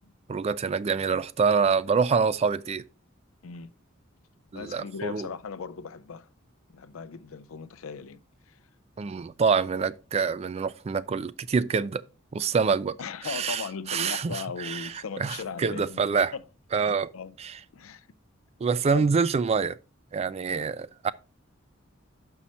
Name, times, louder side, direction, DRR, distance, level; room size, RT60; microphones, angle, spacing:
voice 1, 0.3-2.8 4.5-5.3 9.0-12.0 12.3-13.0 13.2-13.6 13.9-14.9 15.2-16.3 16.7-17.1 17.4-17.5 18.6-19.8 20.1-21.1, right 5 dB, 30° right, 0.3 m, -26 dB
voice 2, 4.5-6.3 6.7-8.2 8.5-8.6 13.0-16.0 16.3-16.4 16.8-17.4 17.7-18.1 18.9-19.0, left 5 dB, 90° left, 0.5 m, -38 dB
6.2 x 5.6 x 4.2 m
head